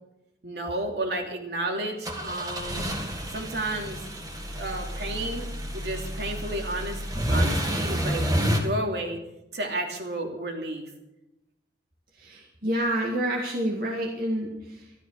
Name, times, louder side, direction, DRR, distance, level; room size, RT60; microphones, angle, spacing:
voice 1, 0.4-2.9 3.3-4.0 4.5-5.5 5.7-7.0 7.3-9.2 9.5-10.9, right 1 dB, 65° right, 2 dB, 2.8 m, -32 dB
sound 1, 2.0-8.6, equal, 20° right, 2.0 m, -29 dB
voice 2, 12.2-15.0, right 1 dB, 50° right, -1 dB, 1.9 m, -29 dB
13.5 x 13.0 x 6.5 m, 0.90 s
head